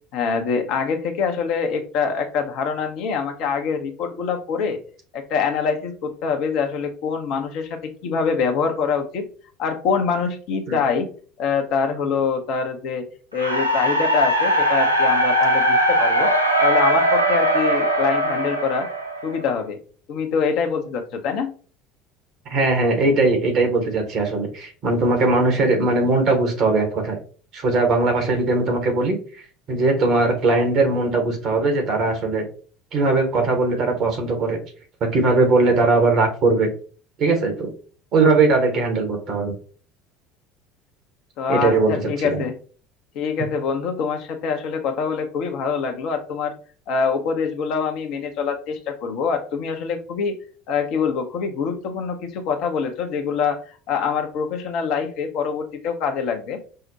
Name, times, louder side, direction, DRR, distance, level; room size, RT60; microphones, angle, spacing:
voice 1, 0.1-4.8 5.1-9.3 9.6-11.1 11.4-13.1 13.3-16.3 16.6-18.9 19.2-19.8 20.1-21.5 41.4-42.6 43.1-46.6 46.9-50.4 50.7-56.6, left 6 dB, 55° left, 6 dB, 0.6 m, -24 dB
sound 1, 13.4-19.5, right 1 dB, 90° right, 0.4 m, -20 dB
voice 2, 22.5-27.2 27.5-29.2 29.7-32.4 32.9-34.6 35.1-36.7 37.2-37.7 38.1-39.5 41.5-41.9 42.2-42.4, right 3 dB, 45° right, 3 dB, 1.2 m, -19 dB
5.5 x 2.1 x 2.7 m, 0.40 s
figure-of-eight pair, 65°, 0 cm